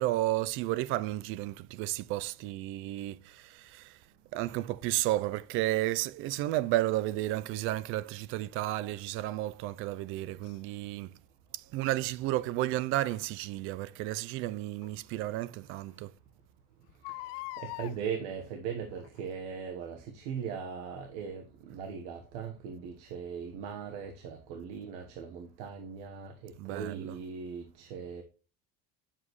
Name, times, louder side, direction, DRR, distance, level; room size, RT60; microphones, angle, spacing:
voice 1, 0.0-4.0 4.3-11.1 11.5-16.1 26.6-27.1, right 16 dB, 45° right, 0.4 m, -32 dB
Crying sobbing, 10.4-10.6 13.0-13.2 14.8-14.9 15.4-15.5 15.8-15.9 16.9-18.0 18.9-19.3 19.8-19.9, left 20 dB, 90° left, 0.4 m, -42 dB
voice 2, 17.1-28.2, right 7 dB, 75° right, 1.3 m, -39 dB
10.0 x 7.5 x 3.1 m
cardioid pair, 180°, 29 cm